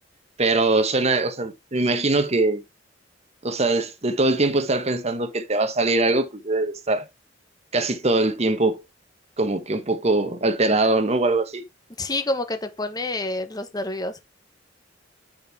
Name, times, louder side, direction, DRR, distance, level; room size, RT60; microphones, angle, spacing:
voice 1, 0.4-2.6 3.4-7.1 7.7-8.8 9.4-11.6, right 2 dB, 35° right, 1.1 m, -22 dB
voice 2, 12.0-14.2, left 2 dB, 20° left, 1.0 m, -28 dB
6.1 x 4.5 x 4.6 m
head